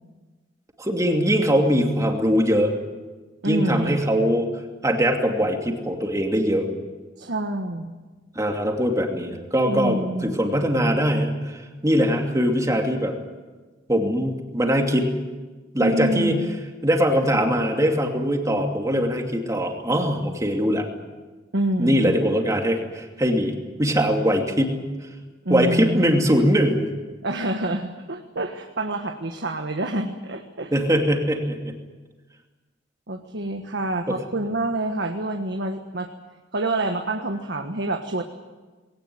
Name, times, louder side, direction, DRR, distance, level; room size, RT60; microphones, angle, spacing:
voice 1, 0.8-2.7 3.4-4.5 4.8-6.7 8.3-13.1 13.9-15.1 15.7-16.4 16.8-20.9 21.8-24.8 25.5-26.9 30.7-31.7 34.1-34.2, equal, 15° right, 2 dB, 2.7 m, -22 dB
voice 2, 3.4-4.0 7.2-8.0 9.7-10.4 15.8-16.5 21.5-22.1 25.4-26.2 27.2-30.7 33.1-36.1 36.5-38.2, right 1 dB, 60° right, 4 dB, 1.5 m, -27 dB
20.5 x 18.0 x 9.6 m, 1.3 s
head